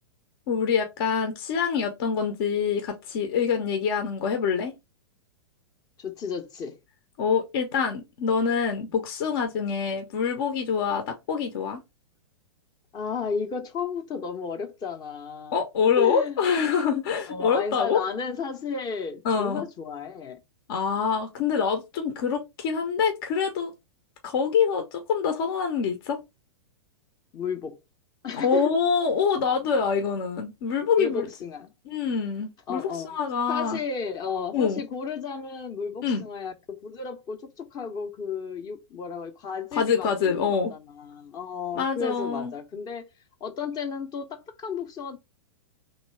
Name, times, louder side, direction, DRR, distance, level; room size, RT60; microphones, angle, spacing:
voice 1, 0.5-4.7 7.2-11.8 15.5-18.0 19.2-19.6 20.7-23.7 24.2-26.2 28.4-31.3 31.9-32.8 33.1-33.8 34.5-34.8 36.0-36.2 39.7-40.7 41.7-42.5, left 6 dB, 55° left, 0.9 m, -25 dB
voice 2, 6.0-6.8 12.9-15.6 16.0-16.4 17.3-20.4 27.3-27.8 28.2-28.7 30.9-31.7 32.7-33.1 33.5-43.1 43.4-45.2, left 5 dB, 30° left, 0.8 m, -33 dB
3.2 x 2.9 x 4.3 m
hypercardioid pair, 110°, 14 cm